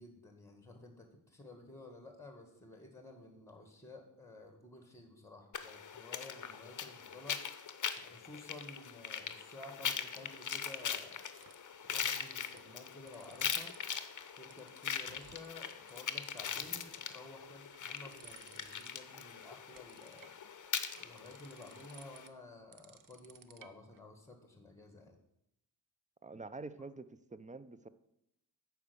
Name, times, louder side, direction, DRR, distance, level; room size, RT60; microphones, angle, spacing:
voice 1, 0.0-7.4 8.0-11.2 11.8-13.7 14.4-20.3 20.9-25.2, left 2 dB, 5° left, 4 dB, 1.9 m, -53 dB
sound 1, 5.5-22.3, left 7 dB, 40° left, 0.8 m, -41 dB
sound 2, 10.6-11.8 12.3-12.7 12.9-13.9 14.2-15.5 15.9-16.0 16.3-17.0 17.5-19.1 19.4-24.0, right 7 dB, 45° right, 0.8 m, -59 dB
voice 2, 26.2-27.9, right 3 dB, 15° right, 14 dB, 0.6 m, -47 dB
8.4 x 4.7 x 6.9 m, 0.78 s
cardioid pair, 55°, 46 cm